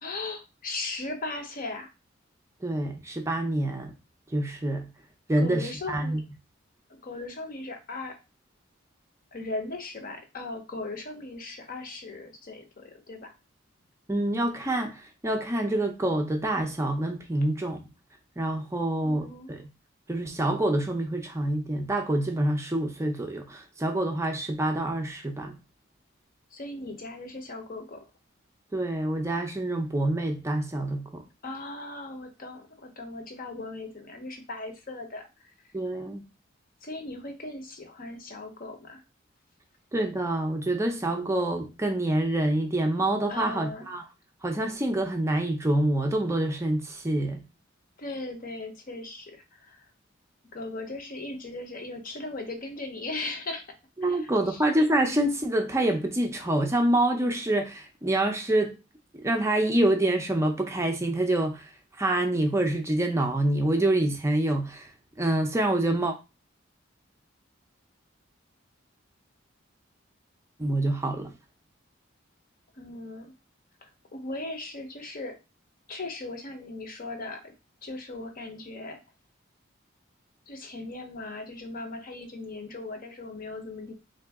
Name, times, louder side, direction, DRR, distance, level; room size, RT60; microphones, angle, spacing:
voice 1, 0.0-1.9 5.4-6.2 6.9-8.2 9.3-13.3 19.0-19.5 26.5-28.0 31.4-35.3 36.8-39.0 43.3-43.9 48.0-49.8 50.5-53.6 54.0-54.6 72.7-73.3 73.8-75.4 75.9-77.5 77.8-79.0 80.5-83.9, left 2 dB, 45° left, 0.8 m, -38 dB
voice 2, 2.6-4.0 4.3-4.9 5.3-6.2 14.1-17.8 18.4-19.7 20.1-25.5 28.7-31.2 35.7-36.2 39.9-44.0 44.4-47.4 54.0-58.7 59.1-61.7 62.0-64.9 65.2-66.1 70.6-71.3, right 1 dB, 15° right, 0.5 m, -26 dB
3.8 x 2.6 x 3.4 m
head